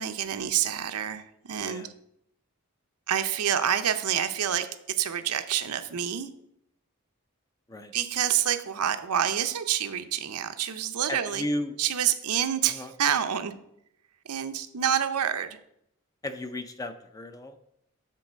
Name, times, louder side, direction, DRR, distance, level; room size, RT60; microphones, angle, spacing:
voice 1, 0.0-1.9 3.1-6.3 7.9-11.4 11.8-13.5 14.3-15.6, right 9 dB, 90° right, 9 dB, 0.6 m, -27 dB
voice 2, 1.6-1.9 7.7-7.9 11.1-11.8 12.7-12.9 16.2-17.6, left 1 dB, 15° left, 9 dB, 0.5 m, -34 dB
7.6 x 4.0 x 6.3 m, 0.75 s
head